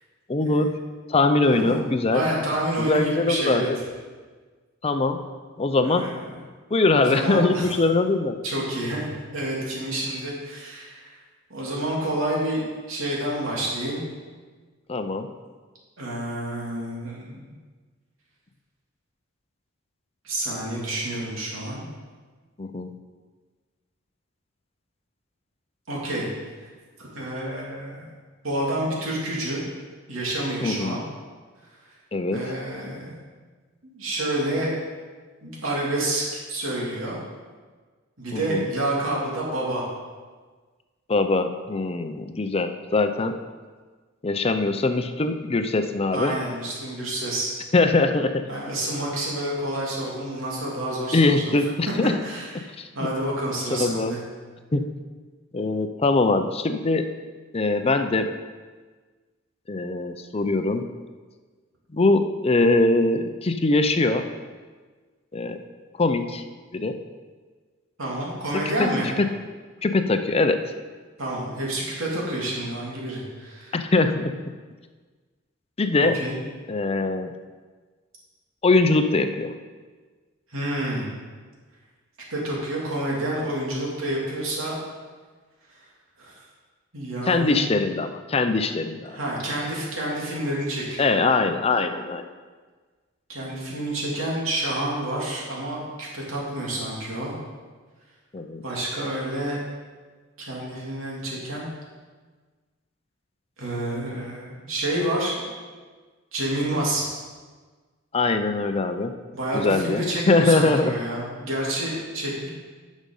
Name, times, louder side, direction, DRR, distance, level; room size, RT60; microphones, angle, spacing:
voice 1, 0.3-0.8 1.1-2.2 2.8-3.8 4.8-5.2 5.6-6.1 6.7-8.4 14.9-15.3 22.6-22.9 30.6-31.0 32.1-32.4 38.3-38.7 41.1-43.4 44.2-46.4 47.7-48.5 51.1-52.2 52.8-53.1 53.7-54.2 54.7-54.9 55.5-57.1 57.5-58.3 59.7-60.9 61.9-64.3 65.3-65.6 66.0-66.4 66.7-67.0 68.5-68.9 69.2-69.3 69.8-70.6 73.7-74.4 75.8-76.2 76.7-77.3 78.6-79.5 87.3-89.2 91.0-92.3 98.3-98.6 108.1-109.1 109.5-110.9, left 3 dB, 30° left, 8 dB, 0.5 m, -22 dB
voice 2, 1.4-1.8 2.1-3.7 5.7-6.4 6.9-7.7 8.4-11.2 11.5-14.1 16.0-17.5 20.2-21.8 25.9-26.3 27.0-28.1 28.4-29.6 30.1-31.0 32.3-33.2 33.8-34.7 35.4-37.2 38.2-39.8 46.1-47.5 48.5-51.5 52.2-54.2 68.0-69.1 71.2-73.7 76.0-76.4 80.5-81.1 82.3-84.8 86.2-86.3 86.9-87.6 89.1-91.1 93.3-97.3 98.6-99.6 100.4-101.7 103.6-105.5 106.3-107.0 109.3-112.5, right 1 dB, 85° right, -4 dB, 2.9 m, -29 dB
10.5 x 6.3 x 5.5 m, 1.4 s
head